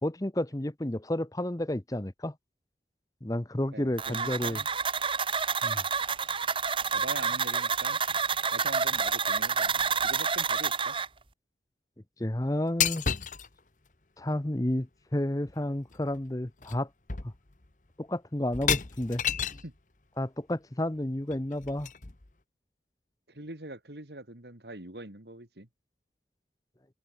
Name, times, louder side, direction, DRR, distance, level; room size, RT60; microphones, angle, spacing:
voice 1, 0.0-2.3 3.2-4.6 5.6-5.8 12.2-13.1 14.2-16.9 17.2-17.3 18.0-19.2 19.5-19.6 20.2-21.9, left 1 dB, 20° left, 0.8 m, -31 dB
voice 2, 3.7-4.7 6.9-8.0 8.4-9.8 10.0-11.0 19.6-19.7 23.3-25.7, right 2 dB, 70° right, 3.1 m, -43 dB
sound 1, 4.0-11.1, right 6 dB, 30° right, 2.1 m, -29 dB
sound 2, 12.8-13.5 15.5-15.6 15.9-16.2 16.6-16.8 17.1-17.7 18.5-19.7 21.3-22.3, left 8 dB, 45° left, 1.2 m, -31 dB
open air
head